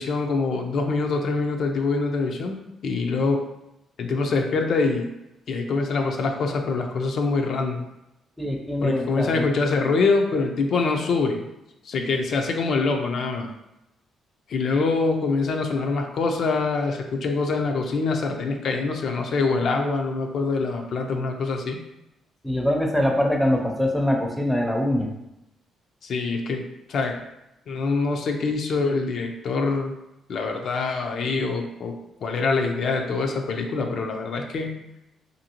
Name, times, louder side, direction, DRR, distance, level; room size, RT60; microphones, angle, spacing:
voice 1, 0.0-3.4 4.0-5.1 5.5-7.8 8.8-11.4 11.9-13.5 14.5-21.8 26.0-27.2 27.7-29.9 30.3-34.8, left 4 dB, 60° left, 3 dB, 0.4 m, -25 dB
voice 2, 8.4-9.5 22.4-25.1, left 1 dB, 5° left, 2 dB, 0.5 m, -23 dB
2.8 x 2.6 x 2.8 m, 0.90 s
cardioid pair, 90°, 0 cm